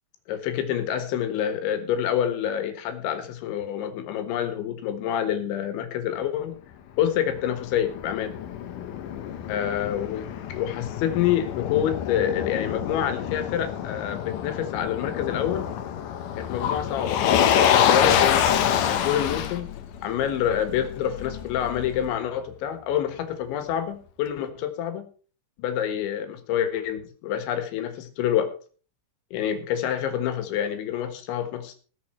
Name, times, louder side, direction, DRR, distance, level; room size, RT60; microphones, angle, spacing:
voice 1, 0.3-6.6 7.0-8.4 9.5-15.7 16.4-19.7 20.0-25.1 25.6-28.5 29.3-31.7, left 10 dB, 90° left, 9 dB, 3.9 m, -27 dB
Motor vehicle (road), 7.0-22.1, left 9 dB, 75° left, 2.0 m, -26 dB
20.0 x 6.9 x 4.4 m, 0.39 s
omnidirectional pair, 5.1 m